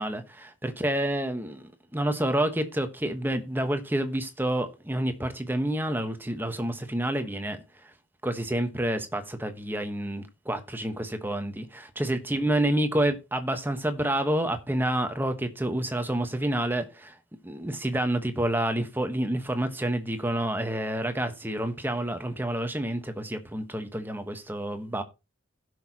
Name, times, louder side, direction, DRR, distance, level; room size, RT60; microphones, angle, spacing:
voice 1, 0.0-7.9 8.2-17.2 17.4-25.0, right 1 dB, 10° right, 1.2 m, -29 dB
16.5 x 6.3 x 2.9 m
head